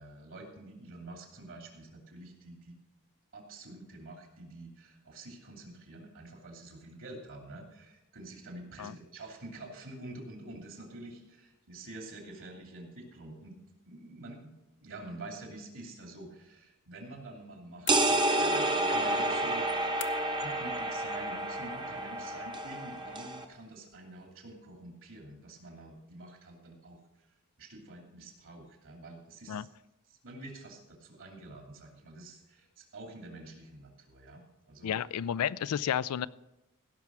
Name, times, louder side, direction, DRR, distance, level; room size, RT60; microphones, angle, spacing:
voice 1, 0.0-2.7 3.3-13.6 13.9-14.5 14.8-19.7 20.4-27.3 27.6-29.7 30.1-34.9, right 2 dB, 60° right, 2 dB, 2.8 m, -47 dB
sound 1, 17.8-18.6 20.0-20.5, left 11 dB, 55° left, 0.7 m, -45 dB
sound 2, 17.9-23.4, right 2 dB, 20° right, 0.9 m, -30 dB
voice 2, 34.8-36.3, left 9 dB, 75° left, 18 dB, 0.4 m, -31 dB
16.5 x 5.9 x 6.1 m, 0.96 s
head